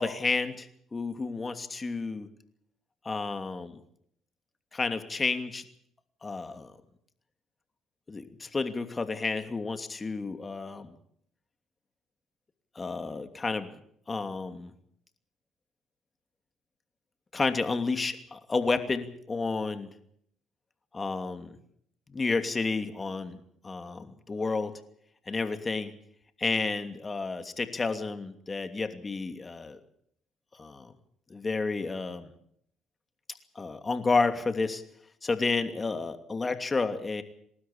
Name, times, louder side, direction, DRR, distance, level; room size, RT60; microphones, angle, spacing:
voice 1, 0.0-2.3 3.0-3.8 4.7-5.6 6.2-6.7 8.1-11.0 12.7-13.7 14.1-14.7 17.3-19.9 20.9-21.6 22.1-24.7 25.3-25.9 26.4-29.8 30.6-30.9 31.3-32.3 33.5-34.8 35.2-37.2, left 4 dB, 30° left, 8 dB, 2.7 m, -31 dB
29.5 x 13.0 x 8.9 m, 0.68 s
supercardioid pair, 65°, 0 cm